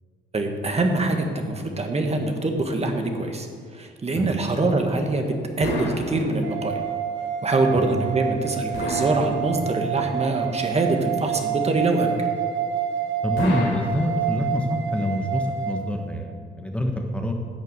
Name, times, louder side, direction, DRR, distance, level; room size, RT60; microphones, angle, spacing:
voice 1, 0.3-3.5 3.7-6.8 7.4-12.3, right 2 dB, 30° right, 4 dB, 1.6 m, -24 dB
sound 1, 5.6-6.8 8.7-10.0 13.4-14.6, left 1 dB, 80° left, 3.6 m, -31 dB
sound 2, 6.4-15.8, right 9 dB, 60° right, 1.6 m, -28 dB
voice 2, 13.2-17.3, left 1 dB, 5° left, 2 dB, 1.2 m, -26 dB
11.0 x 6.7 x 8.1 m, 2.2 s
cardioid pair, 90°, 20 cm